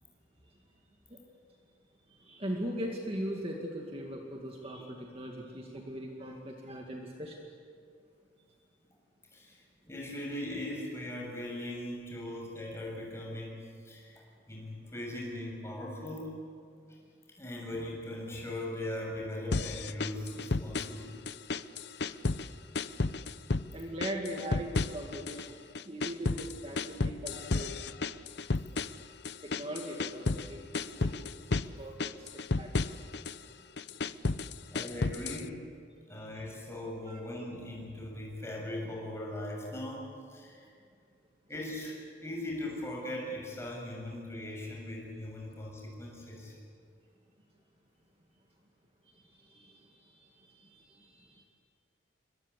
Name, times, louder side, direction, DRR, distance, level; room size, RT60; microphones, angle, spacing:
voice 1, 2.1-7.5 22.5-22.6 23.7-25.6 25.8-28.0 29.4-31.2 31.8-32.7 36.2-36.3 37.1-37.2 49.1-51.4, right 1 dB, 30° right, 0 dB, 2.3 m, -40 dB
voice 2, 9.3-16.4 16.9-17.0 17.4-21.2 34.7-35.6 36.1-40.7 41.5-46.6, left 1 dB, 15° left, -2 dB, 7.3 m, -39 dB
sound 1, 19.5-21.0 21.3-22.5 22.7-23.7 24.0-25.5 25.7-30.5 30.7-31.7 32.0-33.4 33.8-35.5, left 3 dB, 55° left, 0.7 m, -32 dB
28.5 x 24.5 x 8.4 m, 2.3 s
head